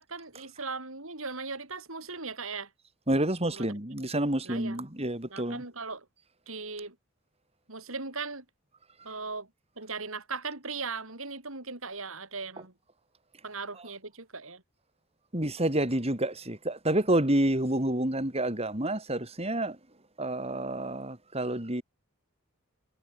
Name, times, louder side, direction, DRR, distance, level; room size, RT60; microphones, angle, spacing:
voice 1, 0.0-2.7 3.5-3.7 4.4-4.8 5.3-6.0 6.5-6.9 7.7-8.4 9.0-9.5 9.8-12.7 13.4-14.6, right 4 dB, 75° right, 6.8 m, -38 dB
voice 2, 3.1-5.6 15.3-19.8 20.2-21.8, right 1 dB, 30° right, 4.3 m, -28 dB
head